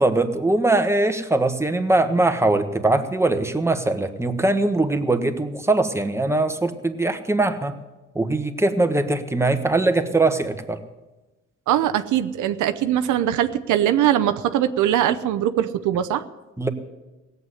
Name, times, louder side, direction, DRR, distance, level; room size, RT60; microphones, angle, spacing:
voice 1, 0.0-7.7 8.1-10.8 16.6-16.7, right 2 dB, 10° right, 7 dB, 1.4 m, -21 dB
voice 2, 11.7-16.2, right 11 dB, 80° right, 10 dB, 0.8 m, -21 dB
17.5 x 8.1 x 9.8 m, 1.1 s
cardioid pair, 90°, 30 cm